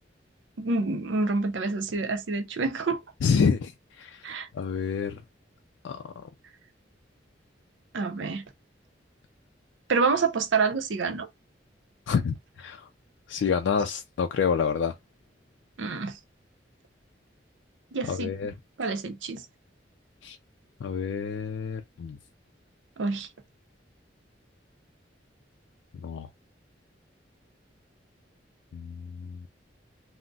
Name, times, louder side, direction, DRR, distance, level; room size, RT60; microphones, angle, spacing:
voice 1, 0.6-3.0 4.2-4.5 7.9-8.4 9.9-11.3 15.8-16.2 17.9-18.3 18.8-19.5 23.0-23.3, right 4 dB, 85° right, 0.6 m, -27 dB
voice 2, 3.2-5.2 5.8-6.2 12.1-12.9 13.3-14.9 18.1-18.5 20.2-20.4 20.8-22.2 26.0-26.3 28.7-29.5, left 6 dB, 75° left, 0.3 m, -28 dB
3.9 x 2.0 x 2.3 m
head